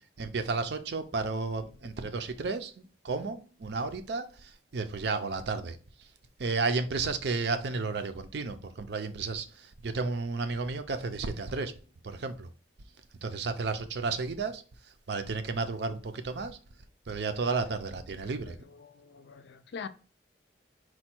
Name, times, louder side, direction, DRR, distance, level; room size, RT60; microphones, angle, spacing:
voice 1, 0.2-2.7 3.0-5.8 6.4-11.7 12.0-12.5 13.2-14.6 15.1-16.6 17.1-18.6, right 4 dB, 65° right, 0.5 m, -32 dB
voice 2, 19.0-19.9, left 6 dB, 65° left, 0.4 m, -42 dB
4.4 x 2.3 x 4.3 m
head